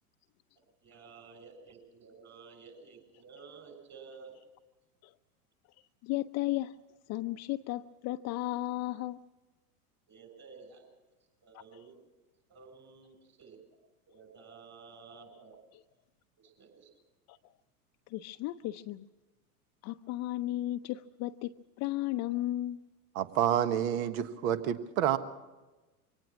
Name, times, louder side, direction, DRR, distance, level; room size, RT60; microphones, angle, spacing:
voice 1, 0.8-4.5 10.1-10.9 11.4-11.9 12.5-13.6 14.1-15.6 16.4-17.0, right 5 dB, 35° right, 5 dB, 7.3 m, -52 dB
voice 2, 6.0-6.7 7.1-9.2 17.3-17.4 18.1-19.0 19.8-21.5 21.8-22.8, left 16 dB, 35° left, 8 dB, 0.6 m, -34 dB
voice 3, 23.1-25.2, right 10 dB, 60° right, 11 dB, 1.5 m, -28 dB
24.0 x 18.0 x 6.2 m, 1.1 s
hypercardioid pair, 100°, 46 cm